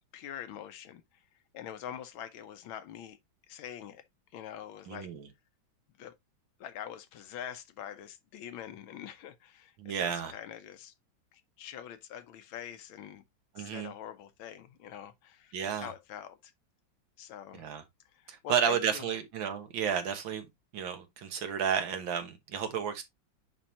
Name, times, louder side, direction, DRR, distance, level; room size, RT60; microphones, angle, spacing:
voice 1, 0.1-1.0 1.5-3.2 3.5-4.0 4.3-5.1 6.0-6.2 6.6-10.9 11.3-13.2 13.6-16.5 17.2-17.7 18.1-19.1, left 10 dB, 85° left, 1.6 m, -44 dB
voice 2, 4.9-5.3 9.8-10.3 13.6-13.9 15.5-15.9 17.5-17.8 18.3-20.5 20.7-23.0, right 7 dB, 75° right, 1.9 m, -32 dB
9.8 x 3.5 x 2.8 m
omnidirectional pair, 2.2 m